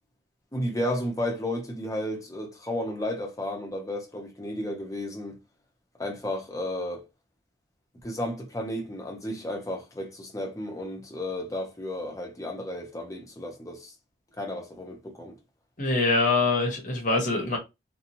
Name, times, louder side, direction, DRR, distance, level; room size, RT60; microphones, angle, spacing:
voice 1, 0.5-5.4 6.0-7.0 8.0-13.9 14.4-15.4, left 1 dB, 20° left, 0.7 m, -33 dB
voice 2, 15.8-17.6, left 3 dB, 45° left, 0.9 m, -24 dB
2.9 x 2.2 x 2.6 m
head